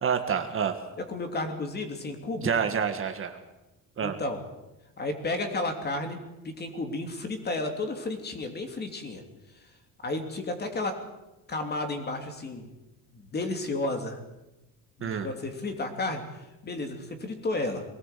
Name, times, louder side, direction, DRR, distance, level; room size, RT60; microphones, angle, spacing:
voice 1, 0.0-0.8 2.4-3.4 4.0-4.2 15.0-15.3, right 7 dB, 35° right, 6 dB, 1.7 m, -28 dB
voice 2, 1.0-2.5 4.0-4.4 5.0-9.2 10.0-11.0 11.5-12.7 13.1-14.2 15.0-17.8, left 2 dB, 30° left, 5 dB, 3.0 m, -32 dB
22.5 x 18.5 x 8.4 m, 0.97 s
cardioid pair, 175°, 35 cm